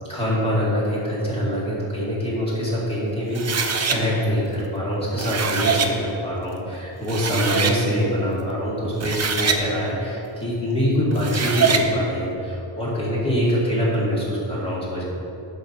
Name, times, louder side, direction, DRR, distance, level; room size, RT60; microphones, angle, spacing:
voice 1, 0.0-15.1, equal, 10° left, -7 dB, 2.4 m, -24 dB
sound 1, 3.3-4.0 5.0-5.9 6.7-6.8 7.1-7.8 8.8-9.6 11.1-11.9, right 5 dB, 35° right, 0.6 m, -23 dB
11.0 x 4.9 x 6.0 m, 2.8 s
wide cardioid pair, 160°, 48 cm